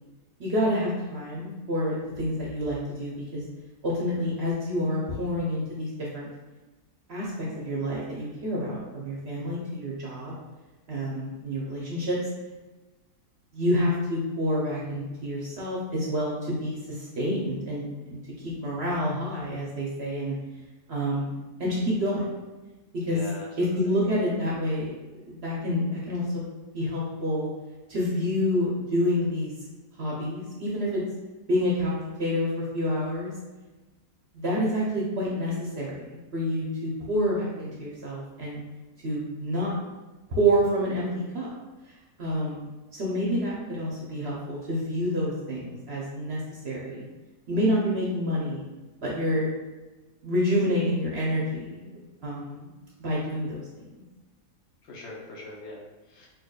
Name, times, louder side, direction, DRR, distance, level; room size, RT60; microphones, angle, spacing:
voice 1, 0.4-3.4 3.8-6.3 7.1-7.3 7.6-10.3 10.9-12.2 13.5-16.8 17.2-18.2 18.4-20.3 20.9-21.3 21.6-22.4 23.1-23.2 23.6-24.9 25.3-26.4 26.7-27.5 27.9-29.5 30.0-31.0 31.5-33.3 34.3-38.6 39.0-39.8 40.3-41.1 41.3-41.5 42.2-42.6 42.9-47.0 47.5-48.6 49.0-49.5 50.2-51.9 52.2-52.7 53.0-53.6, equal, 50° right, -5 dB, 0.8 m, -28 dB
voice 2, 23.0-23.9 54.8-56.3, left 2 dB, 55° left, -3 dB, 0.9 m, -42 dB
4.3 x 2.9 x 2.3 m, 1.2 s
omnidirectional pair, 1.7 m